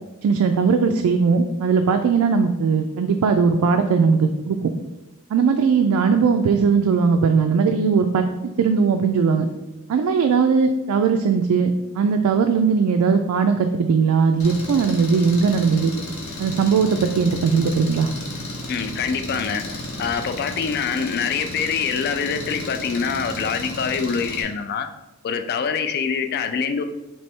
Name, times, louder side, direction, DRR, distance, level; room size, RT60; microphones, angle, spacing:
voice 1, 0.2-4.7 5.3-8.2 8.6-9.5 9.9-15.9 16.4-18.1, right 5 dB, 85° right, 5 dB, 0.3 m, -19 dB
Engine, 14.4-24.4, left 2 dB, 75° left, 0.8 m, -34 dB
voice 2, 18.7-24.9 25.2-26.8, left 6 dB, 45° left, 8 dB, 0.3 m, -25 dB
3.2 x 3.1 x 4.4 m, 1.0 s
head